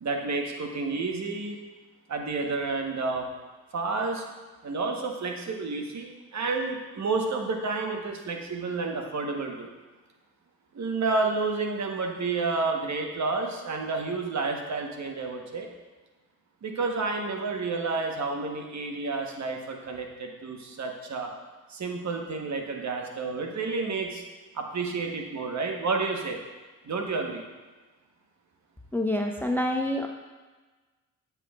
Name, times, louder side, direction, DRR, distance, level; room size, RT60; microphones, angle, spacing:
voice 1, 0.0-1.6 2.1-3.3 3.7-4.2 4.6-9.7 10.7-15.7 16.6-21.3 21.7-24.2 24.5-26.4 26.8-27.4, right 3 dB, 45° right, 2 dB, 1.1 m, -30 dB
voice 2, 28.9-30.1, left 1 dB, 5° left, 3 dB, 0.4 m, -27 dB
8.1 x 5.6 x 2.4 m, 1.3 s
supercardioid pair, 50°, 39 cm